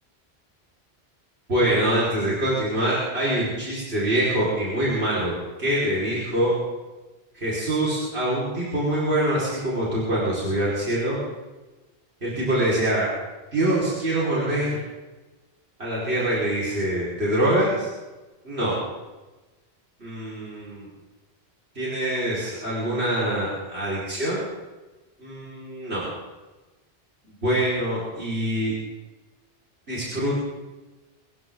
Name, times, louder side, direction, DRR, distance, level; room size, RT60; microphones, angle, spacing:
voice 1, 1.5-5.3 5.6-6.5 7.3-11.2 12.2-13.1 13.5-14.8 15.8-17.9 18.4-18.7 20.0-20.9 21.8-24.5 25.2-26.0 27.2-28.7 29.9-30.4, right 1 dB, 80° right, -7 dB, 5.4 m, -24 dB
24.5 x 15.0 x 3.9 m, 1.1 s
omnidirectional pair, 1.1 m